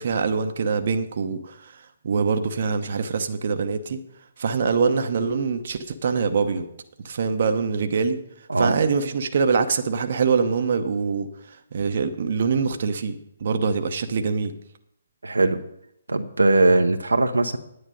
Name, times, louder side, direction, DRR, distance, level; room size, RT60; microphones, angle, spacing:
voice 1, 0.0-4.0 4.4-6.7 7.0-8.2 8.6-14.5, right 5 dB, 55° right, 7 dB, 0.9 m, -24 dB
voice 2, 15.2-15.6 16.1-17.6, right 2 dB, 85° right, 6 dB, 0.9 m, -20 dB
9.8 x 9.1 x 5.1 m, 0.77 s
figure-of-eight pair, 140°, 0 cm